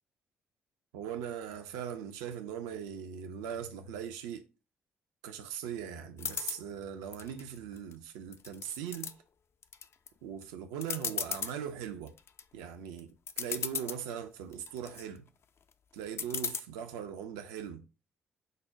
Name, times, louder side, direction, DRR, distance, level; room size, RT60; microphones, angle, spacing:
voice 1, 0.9-4.4 5.2-9.1 10.2-12.1 12.5-15.2 15.9-17.8, right 8 dB, 70° right, 0.4 m, -40 dB
sound 1, 6.2-6.6 7.1-7.9 8.3-9.1 9.6-10.1 10.4-10.5 10.8-11.5 12.1-12.4 13.0-13.1 13.3-14.0 14.5-15.0 16.2-16.6, left 6 dB, 40° left, 0.3 m, -36 dB
5.2 x 2.1 x 3.6 m
figure-of-eight pair, 40°, 6 cm